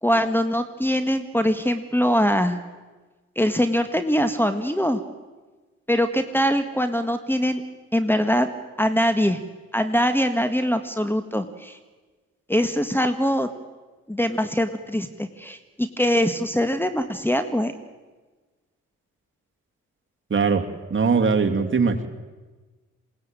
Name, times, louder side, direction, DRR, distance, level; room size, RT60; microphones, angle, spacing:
voice 1, 0.0-2.6 3.3-5.0 5.9-7.6 7.9-8.5 8.8-9.4 9.7-11.8 12.5-13.5 14.1-17.7, equal, 5° left, 9 dB, 1.7 m, -22 dB
voice 2, 20.3-20.6 20.9-22.1, right 5 dB, 40° right, 4 dB, 2.7 m, -20 dB
21.5 x 18.0 x 9.0 m, 1.3 s
cardioid pair, 60°, 31 cm